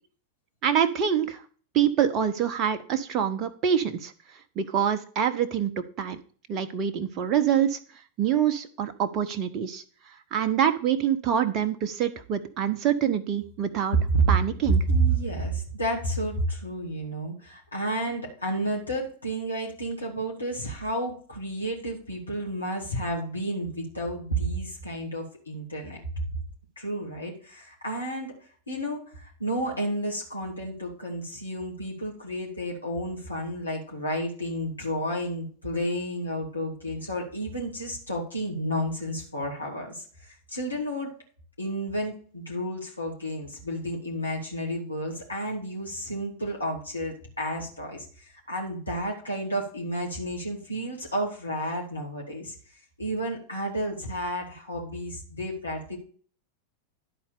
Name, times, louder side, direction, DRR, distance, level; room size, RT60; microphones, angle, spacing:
voice 1, 0.6-1.4 1.7-4.1 4.6-5.7 6.0-6.2 6.5-7.8 8.2-9.8 10.3-14.0 14.3-14.8, right 9 dB, 35° right, 7 dB, 1.0 m, -25 dB
voice 2, 14.9-26.0 26.8-41.1 41.6-52.5 53.0-56.0, right 1 dB, 80° left, -2 dB, 2.8 m, -31 dB
11.5 x 4.3 x 6.7 m, 0.44 s
figure-of-eight pair, 90°, 0 cm